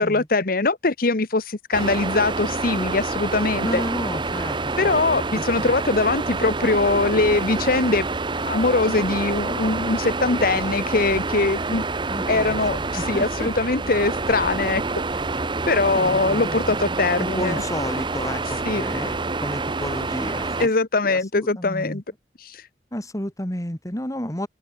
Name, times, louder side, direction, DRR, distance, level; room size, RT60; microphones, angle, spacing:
voice 1, 0.0-3.8 4.8-8.1 8.4-11.8 12.3-14.8 15.7-17.6 18.7-18.8 20.6-22.0 22.4-22.7, left 3 dB, 55° left, 1.2 m, -22 dB
sound 1, 1.7-20.7, right 3 dB, 25° right, 0.9 m, -27 dB
voice 2, 3.5-5.7 12.1-13.5 15.8-16.6 17.2-20.7 21.0-22.0 22.9-24.5, left 1 dB, 20° left, 3.1 m, -32 dB
open air
head